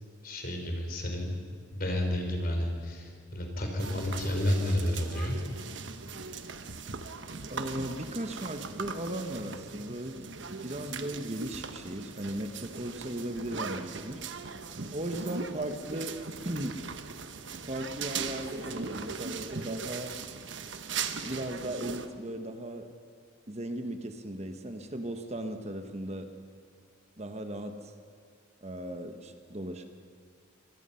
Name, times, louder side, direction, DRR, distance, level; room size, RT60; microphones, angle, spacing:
voice 1, 0.2-1.3 1.7-5.4, left 1 dB, 45° left, 3 dB, 3.9 m, -31 dB
sound 1, 3.8-22.1, right 5 dB, 65° right, 1.2 m, -39 dB
voice 2, 7.5-10.2 10.5-14.2 14.9-16.1 16.4-16.8 17.6-20.1 21.1-22.9 23.5-26.3 27.2-27.9 28.6-29.9, right 1 dB, 35° right, 7 dB, 1.2 m, -37 dB
25.0 x 19.5 x 5.7 m, 2.2 s
head